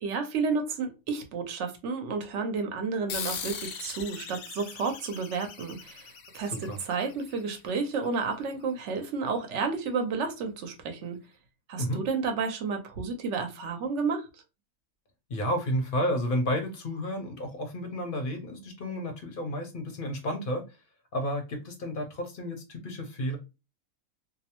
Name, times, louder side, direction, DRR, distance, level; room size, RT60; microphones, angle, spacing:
voice 1, 0.0-6.1 6.3-11.2 11.7-14.3, right 4 dB, 65° right, 0.9 m, -31 dB
sound 1, 3.1-8.1, left 6 dB, 85° left, 1.0 m, -40 dB
voice 2, 15.3-20.8 21.1-23.4, equal, 55° left, 0.6 m, -31 dB
2.6 x 2.0 x 2.8 m
omnidirectional pair, 1.4 m